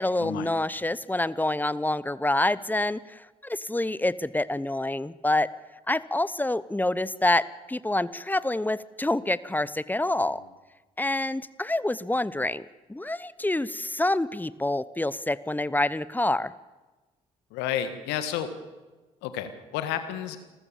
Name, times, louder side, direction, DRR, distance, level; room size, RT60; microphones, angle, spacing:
voice 1, 0.0-3.0 3.4-5.5 5.9-10.4 11.0-16.5, left 2 dB, 10° left, 18 dB, 0.9 m, -27 dB
voice 2, 17.5-18.6 19.2-20.4, left 10 dB, 75° left, 9 dB, 1.8 m, -31 dB
27.0 x 14.5 x 7.2 m, 1.2 s
hypercardioid pair, 45°, 18 cm